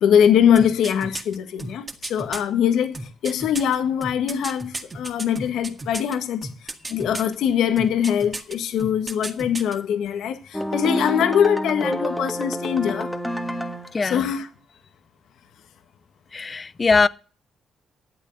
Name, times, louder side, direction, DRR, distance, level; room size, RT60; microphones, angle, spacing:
voice 1, 0.0-3.0 3.2-6.5 6.9-13.1 14.0-14.5, left 8 dB, 80° left, 1.6 m, -22 dB
sound 1, 0.6-2.4 2.9-6.2 6.4-7.3 7.8-8.5 8.8-9.8 10.1-10.2, right 2 dB, 25° right, 1.9 m, -33 dB
sound 2, 10.5-14.0, equal, 5° left, 1.6 m, -27 dB
voice 2, 16.3-17.1, left 4 dB, 30° left, 0.6 m, -20 dB
12.0 x 8.4 x 6.6 m
cardioid pair, 90°, 0 cm